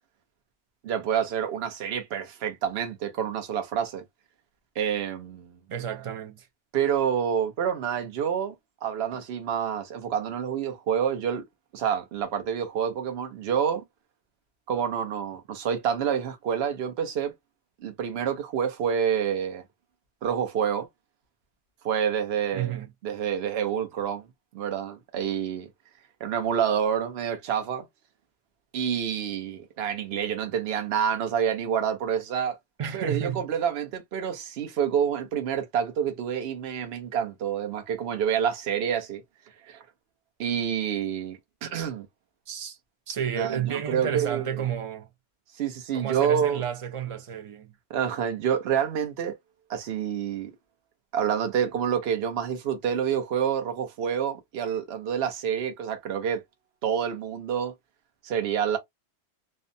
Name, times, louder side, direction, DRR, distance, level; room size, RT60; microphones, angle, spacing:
voice 1, 0.8-4.0 4.8-5.6 6.7-8.5 8.8-11.4 11.7-13.8 14.7-17.3 17.8-19.6 20.2-20.9 21.8-22.8 23.0-24.3 24.5-25.7 26.2-27.8 28.7-32.6 32.9-39.2 39.7-39.8 40.4-42.1 43.3-44.4 45.6-46.6 47.9-49.4 49.7-50.5 51.1-56.4 56.8-57.7 58.2-58.8, right 8 dB, 65° right, 0.9 m, -28 dB
voice 2, 5.7-6.5 22.5-22.9 32.8-33.4 42.5-42.8 43.1-45.1 45.9-47.7, right 9 dB, 45° right, 0.4 m, -31 dB
2.6 x 2.1 x 2.6 m
omnidirectional pair, 1.2 m